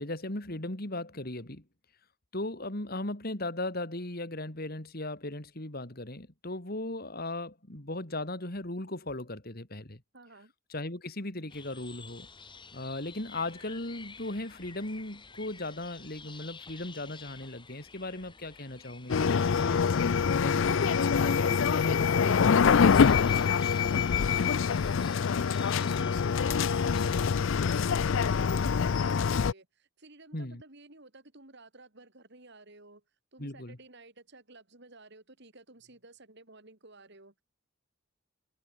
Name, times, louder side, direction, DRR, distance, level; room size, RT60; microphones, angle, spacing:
voice 1, 0.0-1.6 2.3-10.0 10.7-12.3 12.7-19.8 20.3-23.3 26.0-26.2 30.3-30.6 33.4-33.8, left 2 dB, 45° left, 2.8 m, -37 dB
voice 2, 10.1-10.5 23.6-33.0 33.3-37.4, right 2 dB, 50° right, 3.4 m, -54 dB
sound 1, 11.5-27.4, left 5 dB, 20° left, 3.9 m, -50 dB
sound 2, 19.1-29.5, left 6 dB, 60° left, 0.4 m, -25 dB
head